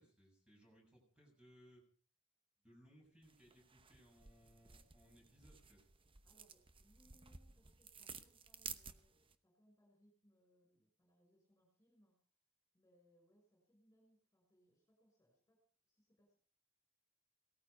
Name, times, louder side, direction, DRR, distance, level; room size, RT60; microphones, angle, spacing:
voice 1, 0.0-1.8 2.6-5.9, equal, 5° right, -1 dB, 7.4 m, -66 dB
sound 1, 3.2-9.3, right 6 dB, 25° right, 0.9 m, -55 dB
voice 2, 6.2-12.2 12.7-15.6 15.9-16.4, equal, 15° left, 0 dB, 6.6 m, -74 dB
18.0 x 14.0 x 5.3 m, 0.43 s
head